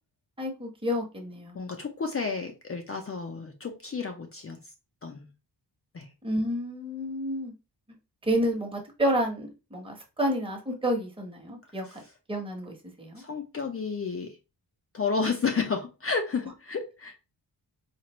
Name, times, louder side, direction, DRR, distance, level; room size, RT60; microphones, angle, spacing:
voice 1, 0.4-1.7 6.2-7.5 8.2-12.0 12.3-13.2, equal, 15° right, 1.0 m, -30 dB
voice 2, 1.5-4.6 5.0-5.3 5.9-6.1 11.9-12.0 13.2-14.4 14.9-17.2, left 5 dB, 35° left, 0.5 m, -31 dB
4.4 x 2.4 x 3.0 m
wide cardioid pair, 155°, 42 cm